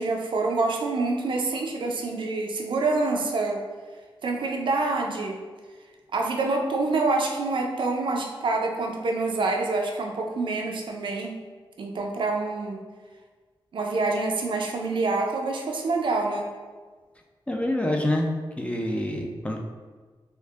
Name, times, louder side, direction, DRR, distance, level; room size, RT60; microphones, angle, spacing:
voice 1, 0.0-3.6 4.2-5.4 6.1-11.4 11.8-12.8 13.7-16.5, right 3 dB, 65° right, 2 dB, 0.4 m, -26 dB
voice 2, 17.5-18.3 18.6-19.6, left 1 dB, 15° left, 1 dB, 0.3 m, -26 dB
4.4 x 2.4 x 2.4 m, 1.4 s
wide cardioid pair, 155°, 9 cm